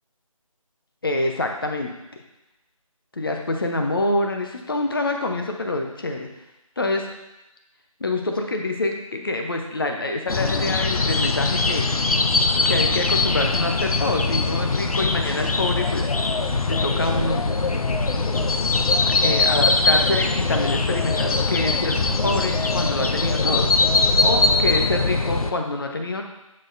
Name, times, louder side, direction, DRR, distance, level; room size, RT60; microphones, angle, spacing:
voice 1, 1.0-1.9 3.1-6.3 6.8-7.1 8.0-11.9 12.6-16.1 16.7-17.5 19.1-26.2, left 2 dB, 40° left, 3 dB, 0.7 m, -26 dB
sound 1, 10.3-25.5, left 3 dB, 85° left, 0.5 m, -21 dB
Wind, 15.1-24.9, right 2 dB, 20° right, 1.4 m, -36 dB
6.4 x 6.1 x 2.6 m, 0.94 s
figure-of-eight pair, 170°, 18 cm